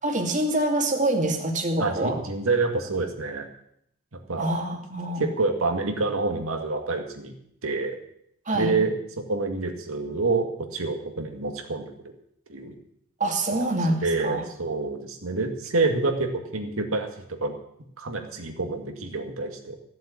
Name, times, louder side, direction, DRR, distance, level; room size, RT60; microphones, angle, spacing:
voice 1, 0.0-2.2 4.4-5.3 8.5-8.8 13.2-14.4, right 1 dB, 35° right, 3 dB, 2.3 m, -25 dB
voice 2, 1.8-3.5 4.3-4.5 5.2-7.3 7.6-8.0 8.5-11.9 12.5-12.7 14.0-17.5 18.0-19.8, right 3 dB, 75° right, 4 dB, 2.2 m, -27 dB
15.5 x 7.5 x 8.5 m, 0.72 s
head